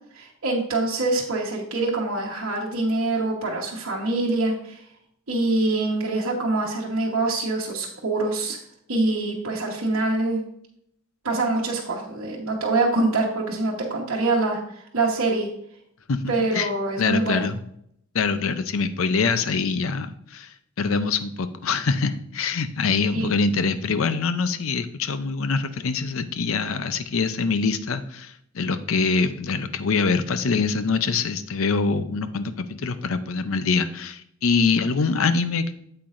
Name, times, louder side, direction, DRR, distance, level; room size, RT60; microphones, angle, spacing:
voice 1, 0.1-4.8 5.3-8.6 8.9-10.4 11.2-14.6 14.9-15.5 16.3-17.5 23.1-23.3, right 2 dB, 70° right, -4 dB, 1.3 m, -24 dB
voice 2, 16.1-16.7 17.0-17.6 18.1-35.7, left 4 dB, 70° left, 11 dB, 0.6 m, -24 dB
8.5 x 7.7 x 2.6 m, 0.71 s
head